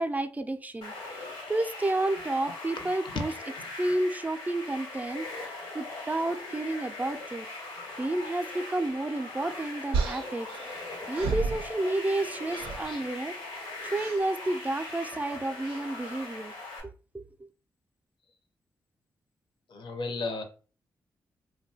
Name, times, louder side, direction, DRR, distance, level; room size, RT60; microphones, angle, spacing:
voice 1, 0.0-3.3 3.7-5.5 5.7-7.5 8.0-10.5 11.1-13.3 13.8-16.5 17.1-17.3, right 2 dB, 15° right, 0.4 m, -31 dB
sound 1, 0.8-16.8, left 2 dB, 85° left, 1.1 m, -40 dB
sound 2, 9.9-12.2 12.5-12.9 13.9-14.3 15.6-15.9, right 5 dB, 90° right, 0.4 m, -33 dB
voice 2, 19.7-20.4, left 3 dB, 65° left, 0.7 m, -33 dB
2.8 x 2.2 x 2.7 m
supercardioid pair, 40°, 9 cm